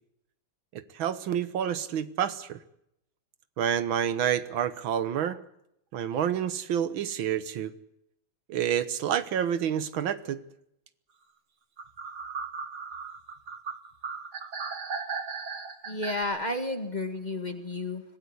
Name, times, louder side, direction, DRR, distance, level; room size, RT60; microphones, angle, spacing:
voice 1, 0.7-2.6 3.6-5.4 5.9-7.7 8.5-10.4, right 9 dB, 85° right, 13 dB, 1.9 m, -28 dB
sound 1, 11.8-16.2, right 5 dB, 55° right, 2.4 m, -36 dB
voice 2, 15.9-18.0, left 2 dB, 25° left, 7 dB, 1.8 m, -32 dB
25.0 x 17.0 x 8.2 m, 0.78 s
omnidirectional pair, 2.2 m